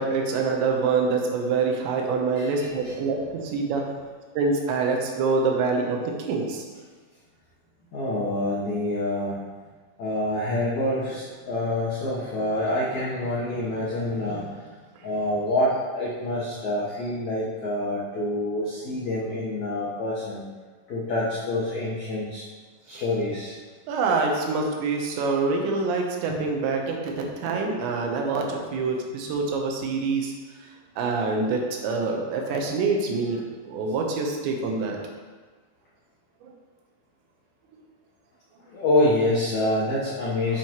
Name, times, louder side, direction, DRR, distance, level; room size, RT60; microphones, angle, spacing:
voice 1, 0.0-4.0 4.4-6.6 23.9-30.3 31.0-35.0 36.4-36.5, right 4 dB, 80° right, 1 dB, 3.2 m, -26 dB
voice 2, 2.3-2.9 7.9-9.4 10.0-14.7 15.0-20.4 20.9-22.4 22.9-23.5 26.3-26.4 31.0-31.1 38.7-40.6, left 1 dB, 80° left, -7 dB, 1.6 m, -27 dB
7.6 x 7.3 x 3.0 m, 1.4 s
omnidirectional pair, 5.2 m